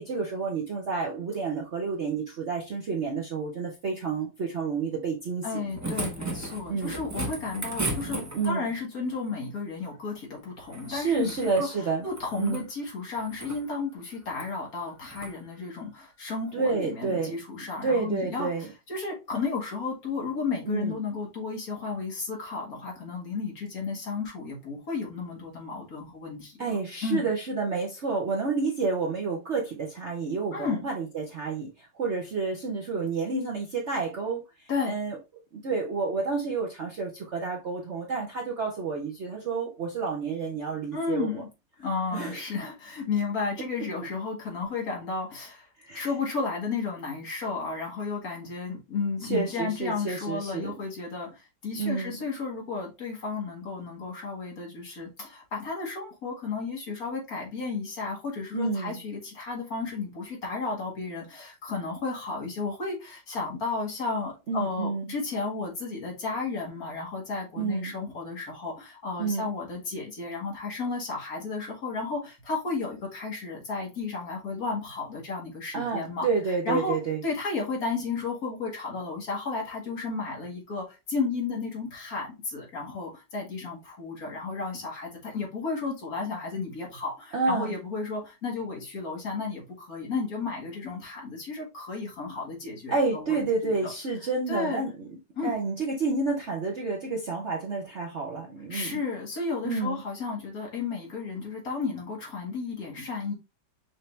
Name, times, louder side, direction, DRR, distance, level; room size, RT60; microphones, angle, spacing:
voice 1, 0.0-5.6 6.7-6.9 8.3-8.6 10.9-12.1 12.4-12.6 16.5-17.4 17.8-18.7 20.7-21.0 26.6-34.4 34.9-35.2 35.5-41.3 42.1-42.4 45.8-46.1 49.2-50.7 51.8-52.2 58.5-59.0 64.5-65.1 67.6-67.9 69.2-69.5 75.7-77.2 87.3-87.7 92.9-95.1 95.4-99.0 99.6-100.0, right 4 dB, 50° right, 0.9 m, -29 dB
voice 2, 5.4-11.7 12.0-18.5 18.9-27.3 30.5-30.9 34.7-34.9 40.9-41.4 41.8-45.7 45.9-76.3 76.7-76.9 77.2-93.9 94.5-94.8 95.4-95.5 98.7-103.3, left 4 dB, 50° left, 2.0 m, -33 dB
sound 1, 5.4-8.7 10.7-11.7 12.0-12.7 13.2-13.6 14.3-14.5 15.1-15.3 16.7-16.8, right 1 dB, 20° right, 0.4 m, -35 dB
5.8 x 2.7 x 3.3 m
omnidirectional pair, 2.0 m